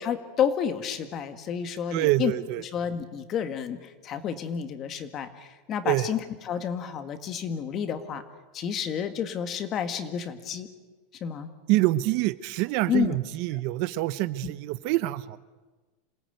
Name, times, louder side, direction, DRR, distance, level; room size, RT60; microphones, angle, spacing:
voice 1, 0.0-2.3 2.7-8.2 8.5-10.7 11.2-11.5 12.9-13.2 14.4-14.5, left 8 dB, 30° left, 9 dB, 1.8 m, -30 dB
voice 2, 1.9-2.6 5.8-6.1 11.7-15.4, right 16 dB, 45° right, 15 dB, 0.8 m, -26 dB
27.5 x 19.0 x 9.3 m, 1.3 s
supercardioid pair, 165°, 0 cm